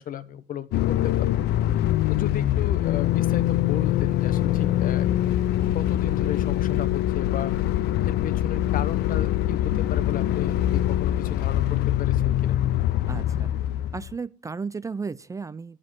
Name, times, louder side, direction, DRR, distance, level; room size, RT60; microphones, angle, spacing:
voice 1, 0.0-1.3 2.1-5.1 5.7-7.5 8.1-12.6, left 9 dB, 50° left, 1.0 m, -35 dB
sound 1, 0.7-14.1, left 13 dB, 70° left, 0.6 m, -23 dB
voice 2, 13.1-13.5 13.9-15.8, right 4 dB, 20° right, 0.4 m, -34 dB
9.8 x 7.5 x 6.2 m
cardioid pair, 100°, 18 cm